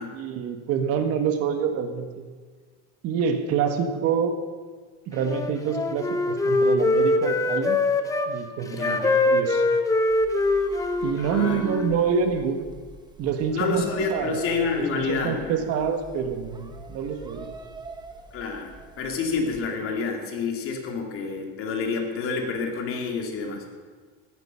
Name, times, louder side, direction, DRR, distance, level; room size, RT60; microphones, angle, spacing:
voice 1, 0.1-2.2 3.0-4.4 5.1-7.8 8.3-9.0 9.2-9.6 11.0-12.7 13.2-14.4 14.8-17.5, right 6 dB, 45° right, 7 dB, 1.5 m, -27 dB
Wind instrument woodwind instrument, 5.2-8.3 8.8-12.0, left 2 dB, 10° left, 0.8 m, -23 dB
voice 2, 8.7-9.1 11.2-11.6 13.5-15.6 18.3-23.6, left 4 dB, 40° left, 3 dB, 2.6 m, -28 dB
sound 1, 10.1-19.7, right 3 dB, 15° right, 1.2 m, -44 dB
14.5 x 13.0 x 5.7 m, 1.5 s
cardioid pair, 155°, 32 cm